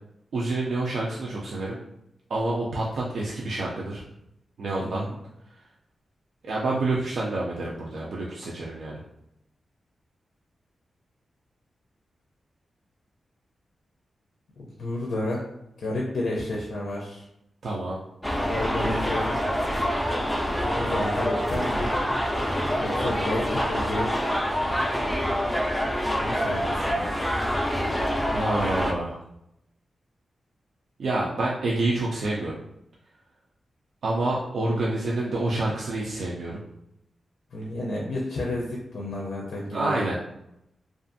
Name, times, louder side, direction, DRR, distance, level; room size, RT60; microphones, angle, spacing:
voice 1, 0.3-1.8 2.3-4.0 4.6-5.0 6.4-9.0 17.6-18.0 28.3-29.2 31.0-32.6 34.0-36.6 39.7-40.2, right 2 dB, 70° right, -4 dB, 0.4 m, -28 dB
voice 2, 4.8-5.1 14.6-15.4 15.8-17.3 18.5-19.4 20.7-21.9 22.8-24.2 26.2-27.1 37.5-40.1, left 1 dB, 75° left, -3 dB, 0.5 m, -31 dB
sound 1, 18.2-28.9, equal, 5° left, 0.3 m, -26 dB
2.5 x 2.4 x 2.5 m, 0.82 s
wide cardioid pair, 130°, 0 cm